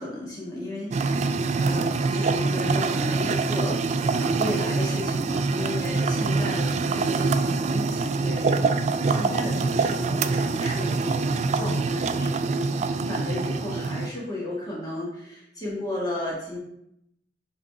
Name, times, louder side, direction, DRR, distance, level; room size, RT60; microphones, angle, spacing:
voice 1, 0.0-16.6, left 1 dB, 20° left, -5 dB, 1.6 m, -34 dB
sound 1, 0.9-14.1, right 4 dB, 40° right, 0.3 m, -25 dB
5.9 x 3.9 x 4.7 m, 0.77 s
head